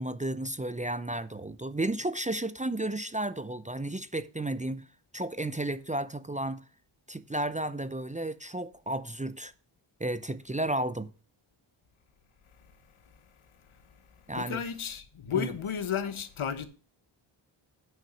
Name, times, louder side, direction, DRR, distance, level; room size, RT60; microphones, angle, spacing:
voice 1, 0.0-4.9 5.1-6.6 7.1-9.5 10.0-11.1 14.3-14.6 15.3-15.5, right 1 dB, 15° right, 0.5 m, -33 dB
voice 2, 14.3-16.6, left 8 dB, 75° left, 1.2 m, -32 dB
9.2 x 5.8 x 6.3 m
wide cardioid pair, 95°, 49 cm